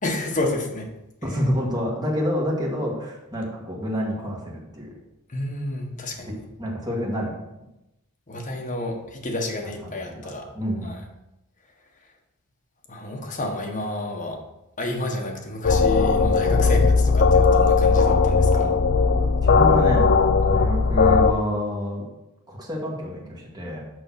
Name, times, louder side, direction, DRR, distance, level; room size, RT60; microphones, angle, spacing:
voice 1, 0.0-0.9 1.2-1.3 5.3-6.3 8.3-10.4 10.8-11.0 12.9-14.4 14.8-18.7, left 1 dB, 35° left, 1 dB, 1.3 m, -30 dB
voice 2, 1.2-4.9 6.6-7.3 9.8-10.9 16.6-16.8 19.4-20.1 20.4-22.0 22.5-23.8, equal, 20° right, -3 dB, 1.8 m, -28 dB
sound 1, 15.6-21.3, left 4 dB, 50° left, 0.5 m, -18 dB
6.3 x 5.8 x 5.8 m, 0.93 s
head